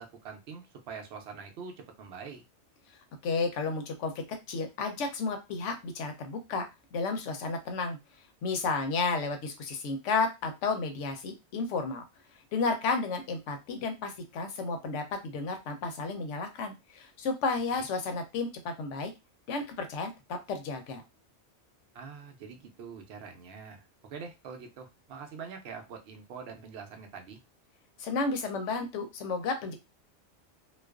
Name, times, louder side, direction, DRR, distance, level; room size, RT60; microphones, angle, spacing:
voice 1, 0.0-2.4 17.7-17.9 21.9-27.4, right 5 dB, 65° right, 4 dB, 0.8 m, -44 dB
voice 2, 3.2-6.7 6.9-8.0 8.4-12.0 12.5-19.1 19.5-21.0 28.0-29.7, left 4 dB, 85° left, 6 dB, 0.9 m, -32 dB
2.4 x 2.2 x 2.3 m, 0.24 s
omnidirectional pair, 1.2 m